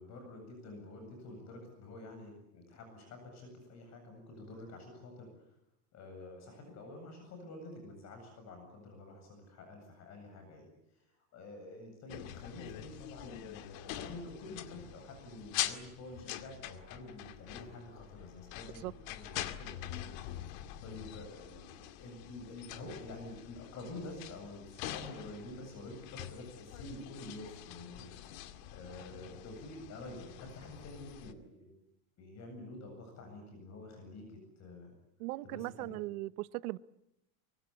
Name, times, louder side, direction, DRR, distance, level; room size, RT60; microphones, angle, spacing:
voice 1, 0.0-5.5 5.9-10.7 11.3-20.0 20.8-28.3 28.7-31.7 32.2-34.9 35.4-36.0, left 2 dB, 35° left, 5 dB, 7.9 m, -48 dB
sound 1, 12.1-31.3, left 13 dB, 60° left, 2.3 m, -44 dB
voice 2, 35.2-36.8, right 19 dB, 75° right, 17 dB, 1.1 m, -38 dB
25.0 x 24.5 x 8.3 m, 0.83 s
supercardioid pair, 150°, 45 cm